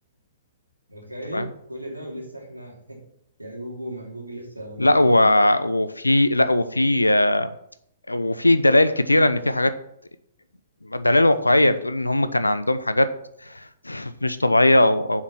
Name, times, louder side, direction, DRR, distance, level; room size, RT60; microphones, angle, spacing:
voice 1, 0.9-3.0 3.4-5.5, right 1 dB, 85° right, -1 dB, 2.7 m, -37 dB
voice 2, 4.8-7.5 8.1-9.7 10.8-13.1 13.4-15.2, left 1 dB, 85° left, 12 dB, 0.7 m, -19 dB
7.5 x 5.9 x 6.0 m, 0.74 s
figure-of-eight pair, 115°, 0 cm